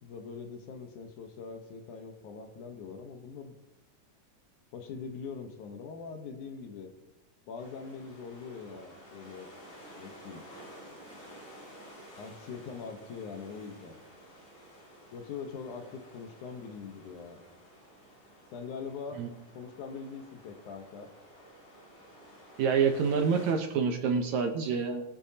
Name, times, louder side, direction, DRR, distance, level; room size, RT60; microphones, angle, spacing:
voice 1, 0.0-3.5 4.7-6.9 7.5-9.5 10.0-10.4 12.2-14.0 15.1-17.4 18.5-19.2 19.5-21.1, left 5 dB, 70° left, 5 dB, 2.4 m, -42 dB
sound 1, 7.6-23.5, equal, 50° left, 6.5 m, -52 dB
voice 2, 22.6-25.0, right 6 dB, 70° right, 5 dB, 2.0 m, -27 dB
21.5 x 8.4 x 2.8 m, 0.95 s
omnidirectional pair, 3.9 m